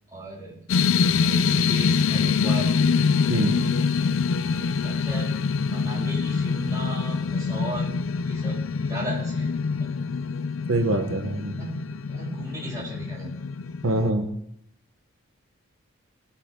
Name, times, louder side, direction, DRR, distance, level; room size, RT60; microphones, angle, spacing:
voice 1, 0.1-0.6 1.1-2.7 3.4-3.9 4.5-9.5 9.8-9.9 11.6-13.3, right 1 dB, 15° right, -6 dB, 6.0 m, -37 dB
sound 1, 0.7-14.1, left 5 dB, 75° left, 0.4 m, -25 dB
voice 2, 10.7-11.5 13.8-14.3, right 1 dB, 85° right, 6 dB, 1.0 m, -24 dB
19.0 x 8.4 x 3.7 m, 0.75 s
head